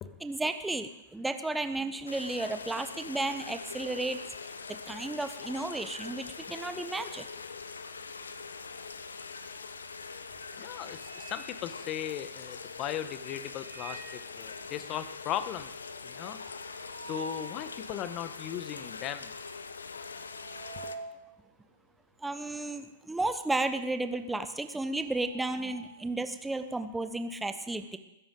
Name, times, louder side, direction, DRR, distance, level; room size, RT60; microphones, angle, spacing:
voice 1, 0.2-4.2 4.9-7.3 22.2-28.0, right 2 dB, 5° right, 9 dB, 0.8 m, -33 dB
sound 1, 2.1-21.0, left 4 dB, 80° left, 0.9 m, -43 dB
sound 2, 9.6-9.9 10.3-12.4 13.3-14.3 14.7-14.8 15.0-15.1 15.5-17.6 18.1-18.2 19.0-19.3 19.6-22.9 23.2-26.1, right 2 dB, 70° right, 5.6 m, -48 dB
voice 2, 10.6-15.7 16.0-16.4 17.0-19.3, left 10 dB, 35° left, 12 dB, 1.1 m, -37 dB
21.0 x 10.5 x 3.8 m, 0.90 s
figure-of-eight pair, 105°, 0 cm